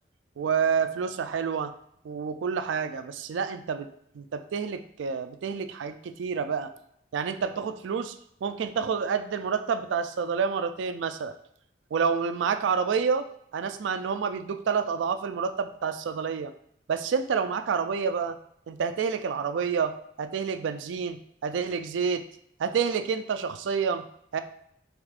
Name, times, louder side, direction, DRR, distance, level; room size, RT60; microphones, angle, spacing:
voice 1, 0.4-1.7 2.0-3.9 4.1-6.7 7.1-8.1 8.4-11.3 11.9-13.2 13.5-16.5 16.9-18.4 18.7-22.2 22.6-24.1 24.3-24.4, right 6 dB, 75° right, 10 dB, 0.3 m, -28 dB
4.7 x 3.5 x 2.4 m, 0.73 s
head